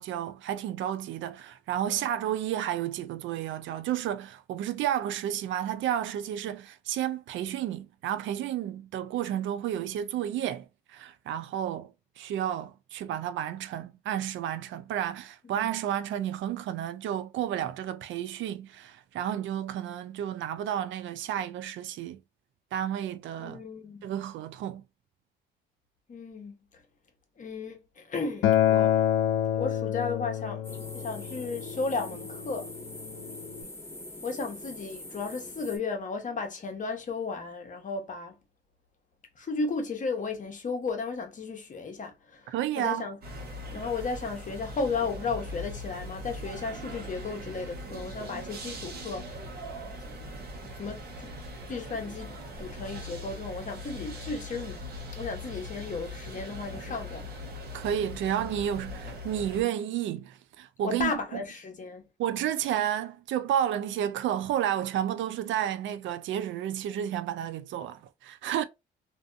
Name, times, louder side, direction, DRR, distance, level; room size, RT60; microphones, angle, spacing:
voice 1, 0.0-11.9 12.2-22.2 22.7-23.6 24.0-24.8 42.5-43.1 57.7-61.1 62.2-68.6, right 10 dB, 75° right, 0.4 m, -31 dB
voice 2, 23.4-24.0 26.1-26.5 27.4-29.1 29.5-30.6 30.9-32.7 34.2-38.3 39.4-43.2 43.7-49.4 50.0-50.4 50.8-51.3 51.7-52.3 52.6-54.8 55.1-57.3 60.8-62.0, left 4 dB, 40° left, 0.9 m, -34 dB
Acoustic guitar, 28.4-33.6, left 11 dB, 80° left, 0.5 m, -28 dB
sound 1, 30.6-35.8, left 1 dB, 15° left, 1.1 m, -43 dB
sound 2, 43.2-59.6, left 1 dB, 50° right, 1.0 m, -40 dB
2.6 x 2.6 x 2.3 m
cardioid pair, 90°, 20 cm